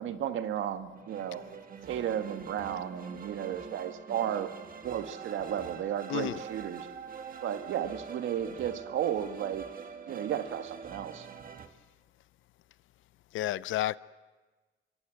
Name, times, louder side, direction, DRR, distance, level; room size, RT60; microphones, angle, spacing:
voice 1, 0.0-1.4 1.9-4.5 4.8-6.9 7.4-9.7 10.1-11.3, right 10 dB, 75° right, 1.6 m, -34 dB
sound 1, 1.0-11.7, right 6 dB, 45° right, 1.8 m, -44 dB
voice 2, 13.3-14.0, left 14 dB, 80° left, 0.7 m, -31 dB
24.0 x 23.0 x 7.7 m
cardioid pair, 90°, 20 cm